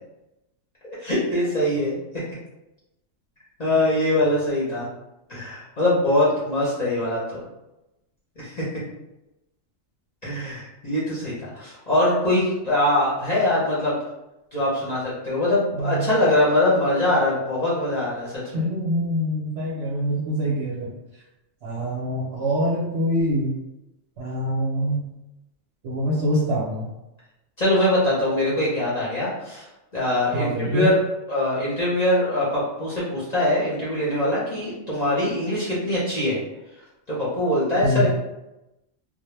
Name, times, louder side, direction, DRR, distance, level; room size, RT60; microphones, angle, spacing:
voice 1, 0.8-2.0 3.6-4.9 5.3-7.4 8.4-8.8 10.2-14.0 14.5-18.6 27.6-29.7 29.9-31.0 31.3-36.4 37.1-38.1, left 1 dB, 40° left, -8 dB, 0.7 m, -23 dB
voice 2, 15.7-16.1 18.5-20.9 21.6-23.5 24.2-25.0 25.8-26.9 30.3-30.9 37.8-38.1, equal, 65° right, -4 dB, 0.7 m, -24 dB
2.2 x 2.1 x 3.1 m, 0.95 s
omnidirectional pair, 1.4 m